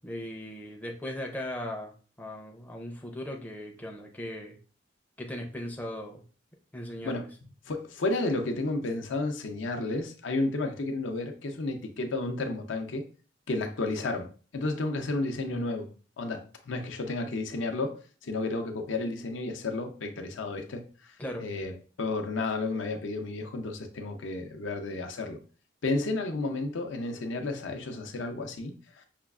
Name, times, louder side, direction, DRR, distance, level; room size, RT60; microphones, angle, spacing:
voice 1, 0.0-1.9 2.2-4.6 5.2-6.2 6.7-7.3 15.5-15.6 21.2-21.4, left 1 dB, 10° left, 1 dB, 0.4 m, -38 dB
voice 2, 7.7-13.0 13.5-15.9 16.2-25.4 25.8-29.0, left 2 dB, 80° left, 5 dB, 0.6 m, -32 dB
5.7 x 2.3 x 2.3 m, 0.38 s
head